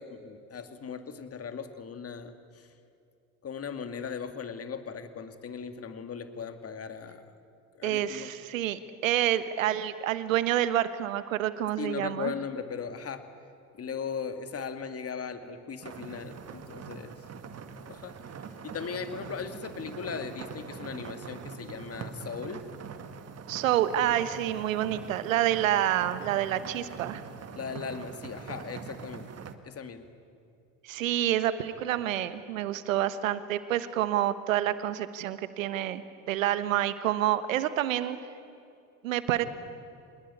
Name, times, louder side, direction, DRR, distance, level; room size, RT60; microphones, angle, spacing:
voice 1, 0.0-2.7 3.4-7.3 7.7-8.3 11.8-13.3 13.8-17.1 17.9-18.2 18.6-22.7 27.6-29.3 29.6-30.1, left 6 dB, 35° left, 8 dB, 2.3 m, -38 dB
voice 2, 7.8-12.3 23.5-27.2 30.8-38.2 39.0-39.5, right 12 dB, 90° right, 13 dB, 1.3 m, -28 dB
sound 1, 15.8-29.5, right 6 dB, 40° right, 2.0 m, -43 dB
25.5 x 20.5 x 9.8 m, 2.5 s
hypercardioid pair, 70°, 39 cm